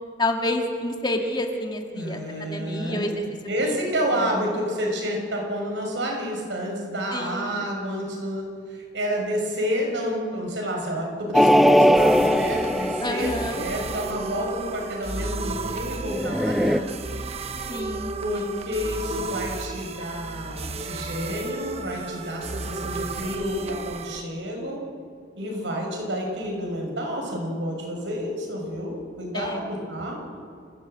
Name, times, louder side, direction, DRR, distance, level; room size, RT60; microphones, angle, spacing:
voice 1, 0.2-3.2 3.6-3.8 4.1-4.3 7.1-7.6 13.0-13.6 17.7-18.6 29.3-29.7, left 1 dB, 25° left, 3 dB, 2.0 m, -29 dB
voice 2, 1.9-3.1 3.5-8.4 8.7-16.9 18.2-24.8 25.4-30.2, equal, 85° right, 0 dB, 6.3 m, -29 dB
sound 1, 11.3-14.0 16.1-16.8, equal, ahead, 0.5 m, -19 dB
sound 2, 11.9-24.2, right 3 dB, 35° right, 1.0 m, -34 dB
28.5 x 16.0 x 8.1 m, 2.2 s
head